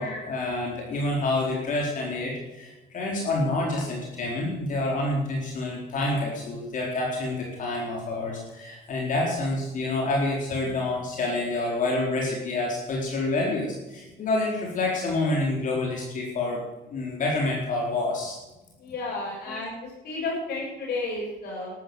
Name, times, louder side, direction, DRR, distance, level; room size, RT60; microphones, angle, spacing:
voice 1, 0.0-16.6 16.9-18.4 19.5-19.6, left 2 dB, 50° left, -2 dB, 4.3 m, -28 dB
voice 2, 18.8-21.7, left 3 dB, 70° left, -4 dB, 6.8 m, -32 dB
13.0 x 12.5 x 7.8 m, 1.0 s
cardioid pair, 110°, 17 cm